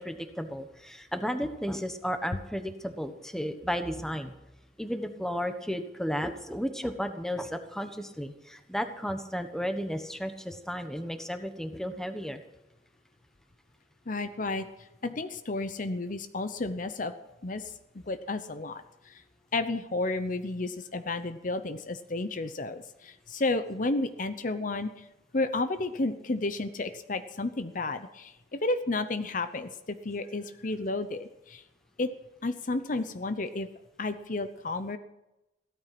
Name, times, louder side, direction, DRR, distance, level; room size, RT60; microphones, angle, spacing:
voice 1, 0.0-4.3 4.8-12.4, equal, 5° left, 7 dB, 1.2 m, -33 dB
voice 2, 14.1-14.7 15.0-17.1 17.4-19.2 19.5-25.0 25.3-31.6 32.0-32.1 32.4-33.7 34.0-35.0, left 2 dB, 45° left, 10 dB, 0.8 m, -32 dB
16.0 x 13.0 x 6.0 m, 0.93 s
head